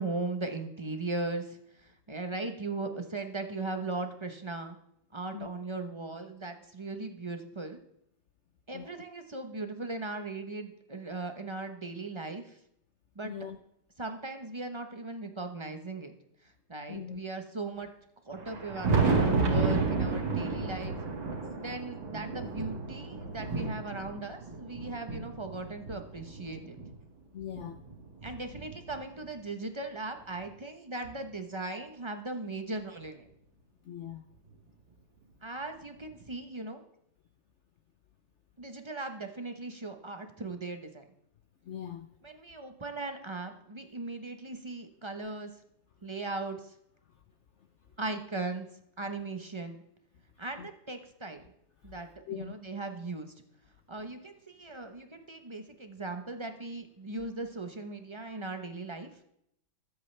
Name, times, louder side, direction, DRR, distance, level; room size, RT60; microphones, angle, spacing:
voice 1, 0.0-4.8 5.1-7.8 8.7-12.6 13.1-13.3 14.0-16.1 16.4-17.9 18.2-21.0 21.6-26.9 28.2-33.3 35.4-36.8 38.6-41.0 42.2-45.5 46.0-46.7 48.0-48.7 49.0-49.8 50.4-51.4 51.8-53.3 53.9-59.2, right 3 dB, 30° right, 0.5 m, -38 dB
voice 2, 13.2-13.6 16.9-17.2 27.3-27.8 33.8-34.2 41.7-42.1 50.6-50.7 52.3-52.6, left 9 dB, 70° left, 0.6 m, -40 dB
Thunder, 18.3-26.9 27.5-29.2 30.4-30.5 31.0-31.1 33.0-33.1 34.5-34.6 36.1-36.2, right 4 dB, 70° right, 2.9 m, -31 dB
21.5 x 8.2 x 3.3 m
omnidirectional pair, 2.2 m